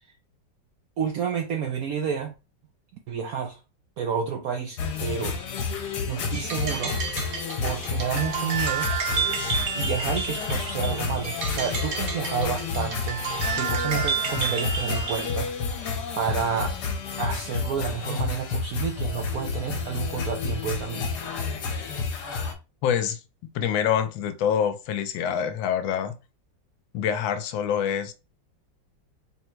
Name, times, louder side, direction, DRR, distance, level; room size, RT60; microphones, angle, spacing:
voice 1, 1.0-2.3 3.1-3.6 4.0-5.4 5.6-7.0 7.6-9.4 9.7-13.3 13.5-15.7 16.2-16.8 17.2-21.1, right 7 dB, 70° right, 0.8 m, -30 dB
sound 1, 4.8-22.5, left 5 dB, 65° left, 1.4 m, -30 dB
sound 2, 6.3-15.4, right 6 dB, 55° right, 1.1 m, -31 dB
voice 2, 22.8-23.2 23.5-26.1 26.9-28.1, left 8 dB, 80° left, 1.3 m, -25 dB
3.9 x 2.2 x 4.4 m
omnidirectional pair, 2.1 m